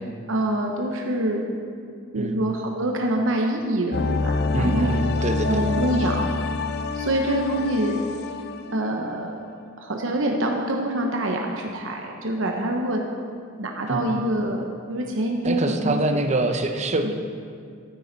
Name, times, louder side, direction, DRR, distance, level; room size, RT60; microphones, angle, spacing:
voice 1, 0.3-1.4 2.1-4.9 5.4-6.3 6.9-8.0 8.7-9.4 9.8-13.0 13.6-16.2 17.0-17.1, right 1 dB, 80° right, 1 dB, 1.0 m, -25 dB
sound 1, 3.9-9.6 9.9-10.0, left 3 dB, 55° left, 0.5 m, -27 dB
voice 2, 4.5-5.5 13.9-14.1 15.4-17.1, right 2 dB, 35° right, 6 dB, 0.8 m, -25 dB
13.0 x 9.5 x 4.1 m, 2.2 s
head